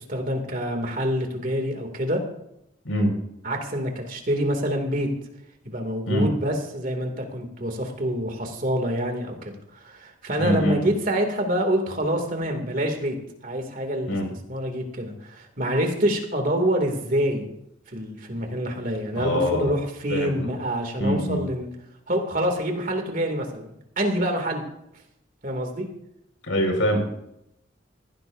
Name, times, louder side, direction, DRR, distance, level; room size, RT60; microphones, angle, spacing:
voice 1, 0.0-2.2 3.4-5.1 5.6-13.2 13.4-14.2 14.5-17.5 17.9-21.7 22.1-23.7 24.0-24.6 25.4-25.9, equal, 45° right, 4 dB, 2.5 m, -26 dB
voice 2, 10.4-10.8 14.1-14.3 19.1-19.7 20.1-20.5 21.0-21.5 26.4-27.0, equal, 85° left, 2 dB, 5.1 m, -24 dB
19.0 x 16.0 x 2.7 m, 0.80 s
head